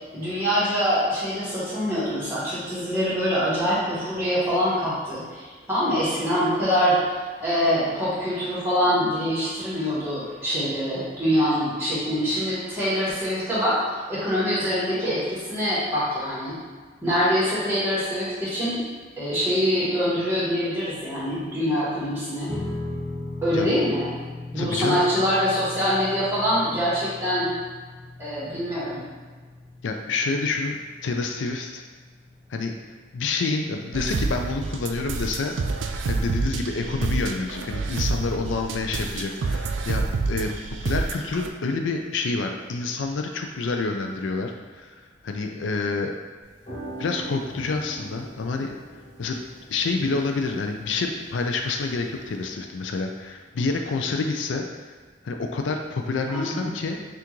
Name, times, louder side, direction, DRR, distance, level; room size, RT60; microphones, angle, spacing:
voice 1, 0.1-13.8 14.1-16.6 17.0-18.8 19.2-22.5 23.4-24.1 24.5-27.5 28.2-29.0 56.3-56.7, equal, 15° right, -10 dB, 1.5 m, -24 dB
sound 1, 22.5-35.0, left 2 dB, 5° left, 0.3 m, -39 dB
voice 2, 24.6-25.0 29.8-31.8 32.5-32.7 33.1-35.6 36.1-40.5 40.8-46.2 47.0-48.8 49.2-49.4 49.7-54.9 55.2-57.0, left 3 dB, 85° left, 3 dB, 0.4 m, -28 dB
sound 2, 33.9-41.5, right 3 dB, 85° right, 0.4 m, -28 dB
sound 3, 46.4-52.4, right 2 dB, 30° left, 1.1 m, -42 dB
5.7 x 2.5 x 3.1 m, 1.5 s
head